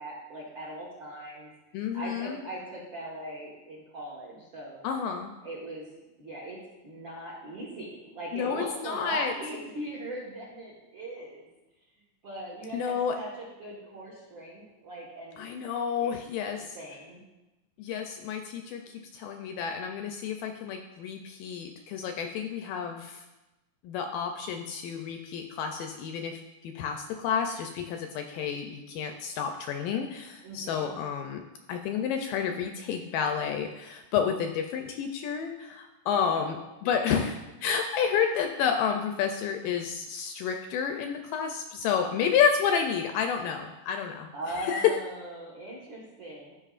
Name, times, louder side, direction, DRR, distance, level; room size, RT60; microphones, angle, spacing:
voice 1, 0.0-1.5 1.9-4.8 5.4-5.9 6.2-6.6 6.8-11.5 12.2-15.5 16.0-16.1 16.5-17.2 30.4-30.9 36.1-36.6 44.3-46.5, right 1 dB, 55° right, -5 dB, 1.3 m, -40 dB
voice 2, 1.7-2.4 4.8-5.3 8.3-9.3 12.7-13.2 15.4-16.8 17.8-23.2 23.8-31.4 31.7-36.6 36.8-45.0, left 7 dB, 80° left, 5 dB, 2.0 m, -30 dB
14.0 x 5.3 x 2.5 m, 1.0 s
omnidirectional pair, 4.2 m